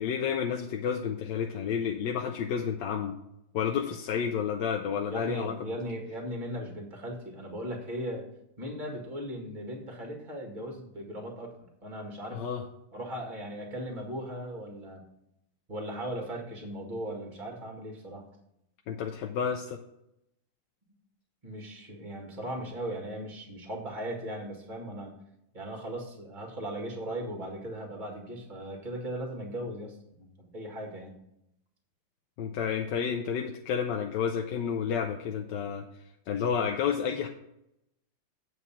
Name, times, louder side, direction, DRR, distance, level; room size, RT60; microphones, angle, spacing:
voice 1, 0.0-3.2 3.5-5.5 12.3-12.6 18.9-19.8 32.4-35.8 36.3-37.3, left 7 dB, 70° left, 3 dB, 1.2 m, -30 dB
voice 2, 5.1-8.2 8.6-11.5 11.8-12.4 12.9-15.1 15.7-18.2 21.4-25.1 25.5-31.2, right 1 dB, 25° right, 1 dB, 1.8 m, -38 dB
8.4 x 4.7 x 7.1 m, 0.80 s
omnidirectional pair, 2.3 m